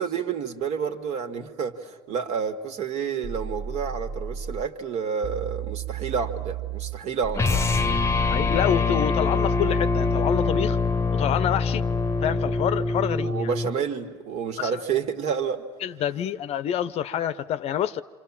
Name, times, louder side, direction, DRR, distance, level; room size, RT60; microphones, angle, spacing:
voice 1, 0.0-7.8 13.1-15.6 16.2-16.3, right 6 dB, 50° right, 2.1 m, -29 dB
sound 1, 3.2-4.7 5.2-8.7, right 6 dB, 30° right, 0.8 m, -33 dB
sound 2, 7.3-13.7, left 4 dB, 20° left, 1.0 m, -24 dB
voice 2, 8.3-10.8 11.1-11.9 12.2-13.5 14.6-14.8 15.8-18.0, left 9 dB, 45° left, 0.8 m, -27 dB
28.0 x 26.5 x 7.4 m
hypercardioid pair, 75°, 14 cm